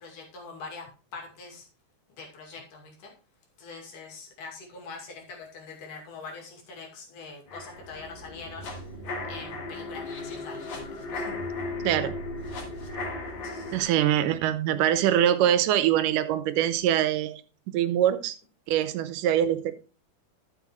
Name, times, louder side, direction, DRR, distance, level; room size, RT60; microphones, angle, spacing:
voice 1, 0.0-1.7 2.2-3.1 3.6-8.7 9.3-11.4 13.4-14.0, left 4 dB, 80° left, 3.9 m, -43 dB
sound 1, 7.5-13.8, left 2 dB, 60° left, 3.9 m, -36 dB
voice 2, 11.8-12.2 13.7-17.4 17.7-18.4 18.7-19.7, right 11 dB, 90° right, 2.4 m, -23 dB
12.0 x 6.9 x 3.1 m
omnidirectional pair, 3.6 m